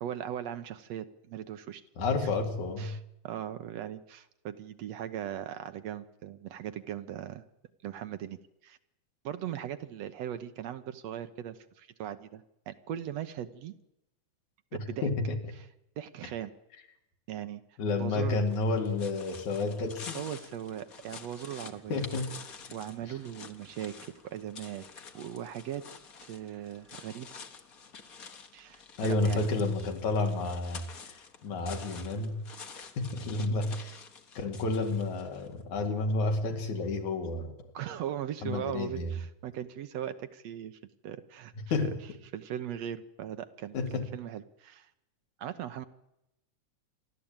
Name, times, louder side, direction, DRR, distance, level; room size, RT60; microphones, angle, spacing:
voice 1, 0.0-1.8 2.8-3.0 3.2-7.4 7.8-8.8 9.2-13.7 14.7-15.0 16.0-16.5 17.3-17.6 18.0-18.4 20.1-22.0 22.7-24.9 25.1-25.8 26.3-27.3 28.5-29.5 37.7-41.5 42.3-44.9 45.4-45.9, right 10 dB, 70° right, 10 dB, 2.1 m, -39 dB
voice 2, 2.0-2.9 14.7-15.4 17.8-20.2 21.9-22.3 29.0-32.4 32.8-34.0 34.4-37.7 38.4-39.1 41.7-42.0 43.7-44.1, left 3 dB, 80° left, 4 dB, 3.8 m, -30 dB
sound 1, 18.3-35.5, left 5 dB, 40° left, 1.4 m, -48 dB
28.0 x 12.5 x 8.9 m, 0.86 s
omnidirectional pair, 3.3 m